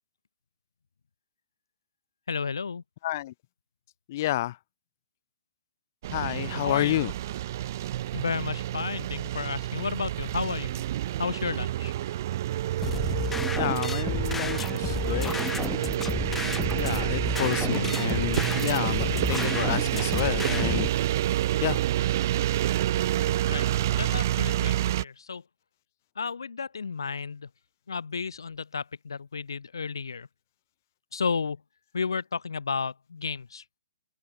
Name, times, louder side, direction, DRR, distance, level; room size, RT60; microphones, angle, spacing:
voice 1, 2.3-2.8 6.6-7.0 8.1-10.8 11.2-11.9 23.5-25.4 26.2-27.5 27.9-30.3 31.1-31.6 31.9-33.8, left 5 dB, 90° left, 4.3 m, -32 dB
voice 2, 3.0-3.3 4.1-4.6 6.1-7.1 13.2-13.3 13.6-20.9 21.6-21.9, left 15 dB, 45° left, 2.7 m, -30 dB
sound 1, 6.0-25.0, right 13 dB, 50° right, 1.4 m, -28 dB
sound 2, 12.8-20.9, left 4 dB, 10° left, 1.1 m, -32 dB
open air
hypercardioid pair, 145°, 2 cm